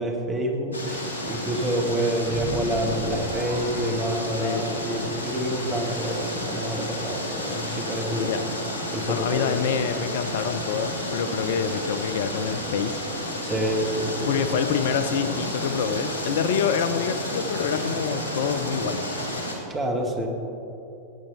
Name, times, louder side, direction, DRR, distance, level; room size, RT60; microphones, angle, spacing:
voice 1, 0.0-8.3 8.9-9.6 13.4-14.5 19.7-20.3, right 1 dB, 20° right, 2 dB, 1.7 m, -28 dB
sound 1, 0.7-19.5, equal, 85° right, 2.2 m, -31 dB
sound 2, 2.2-4.8, right 1 dB, 60° right, 1.5 m, -35 dB
voice 2, 4.4-5.1 8.2-8.5 9.1-13.0 14.3-19.0, left 7 dB, 55° left, 10 dB, 0.6 m, -27 dB
18.0 x 8.8 x 4.2 m, 2.9 s
figure-of-eight pair, 90°, 0 cm